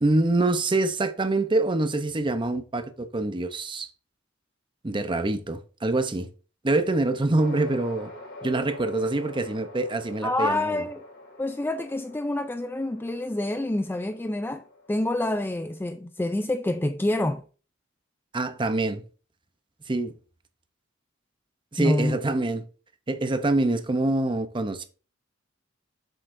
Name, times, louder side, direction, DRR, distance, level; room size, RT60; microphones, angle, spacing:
voice 1, 0.0-3.9 4.8-6.3 6.6-8.1 8.4-10.8 18.3-19.0 19.9-20.1 21.7-22.6 23.1-24.9, right 2 dB, 25° right, 0.7 m, -25 dB
sound 1, 7.4-15.9, left 2 dB, 70° left, 3.4 m, -45 dB
voice 2, 10.2-11.0 11.4-17.5 21.8-22.2, left 1 dB, 10° left, 0.3 m, -27 dB
7.7 x 6.7 x 2.6 m
head